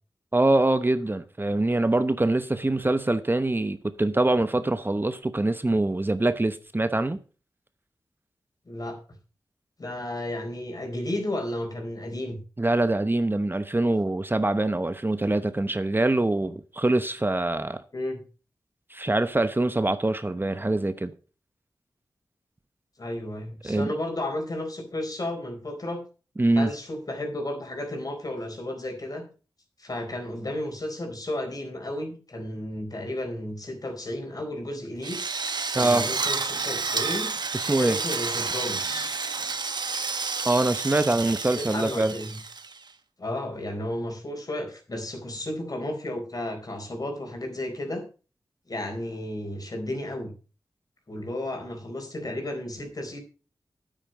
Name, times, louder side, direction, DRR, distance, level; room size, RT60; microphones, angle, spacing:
voice 1, 0.3-7.2 12.6-17.8 18.9-21.1 23.6-23.9 26.4-26.7 35.7-36.1 37.5-38.0 40.4-42.1, right 2 dB, 25° right, 0.9 m, -24 dB
voice 2, 8.7-9.0 9.8-12.4 17.9-18.2 23.0-26.0 26.6-29.2 29.8-35.2 35.7-37.3 37.8-39.1 41.5-42.4 43.2-48.0 48.7-50.3 51.1-53.2, left 1 dB, 50° left, 4.1 m, -33 dB
Drill, 35.0-42.9, right 4 dB, 65° right, 1.1 m, -30 dB
9.0 x 8.9 x 5.2 m
cardioid pair, 45°, 8 cm